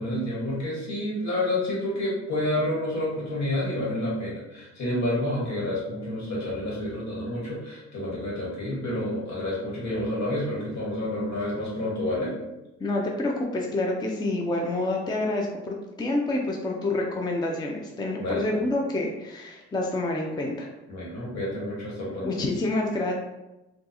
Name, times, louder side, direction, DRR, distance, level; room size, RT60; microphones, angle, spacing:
voice 1, 0.0-12.3 18.2-18.5 20.9-22.3, left 1 dB, 65° left, -5 dB, 1.5 m, -29 dB
voice 2, 12.8-20.7 22.2-23.1, left 2 dB, 15° left, 0 dB, 0.4 m, -28 dB
3.7 x 2.3 x 2.8 m, 1.0 s
cardioid pair, 90°, 30 cm